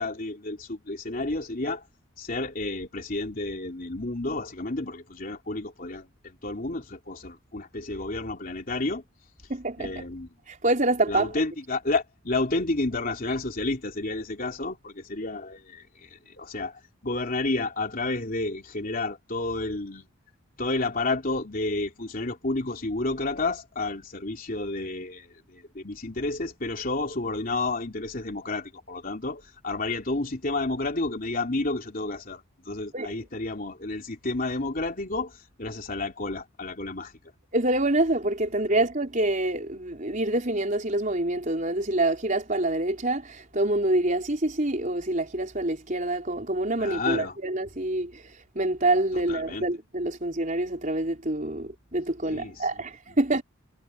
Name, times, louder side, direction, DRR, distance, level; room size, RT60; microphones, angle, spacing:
voice 1, 0.0-1.8 2.2-9.0 9.8-10.3 11.1-20.1 20.6-35.3 35.6-37.1 46.8-47.3 49.1-49.7 52.2-52.7, left 2 dB, 45° left, 3.2 m, -31 dB
voice 2, 9.5-10.0 10.5-11.3 32.9-33.1 37.5-53.4, right 2 dB, 40° right, 4.5 m, -26 dB
head